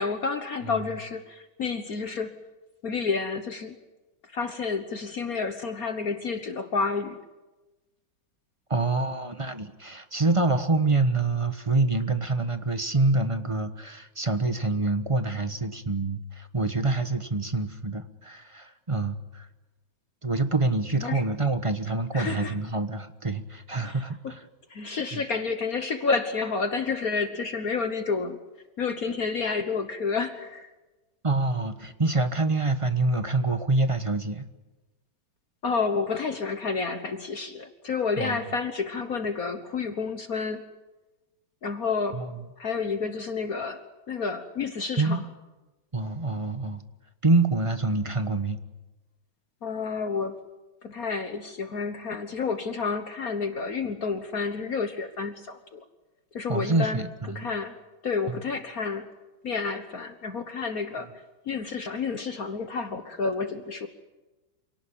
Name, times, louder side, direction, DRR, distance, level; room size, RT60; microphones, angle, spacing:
voice 1, 0.0-2.4 2.8-3.8 4.2-7.2 21.0-21.2 22.1-22.5 23.8-24.3 24.7-28.4 28.8-30.7 35.6-40.6 41.6-42.2 42.6-45.2 49.6-50.4 50.8-55.8 56.3-57.8 58.0-59.1 59.4-61.1 61.4-63.9, left 4 dB, 50° left, 8 dB, 1.6 m, -30 dB
voice 2, 8.7-19.5 20.2-24.4 25.1-25.2 31.2-34.5 38.2-38.4 42.1-42.3 45.0-45.2 45.9-46.8 47.2-48.6 56.5-57.5 58.3-58.4, right 3 dB, 20° right, 9 dB, 1.0 m, -26 dB
27.5 x 18.5 x 8.9 m, 1.1 s
omnidirectional pair, 2.1 m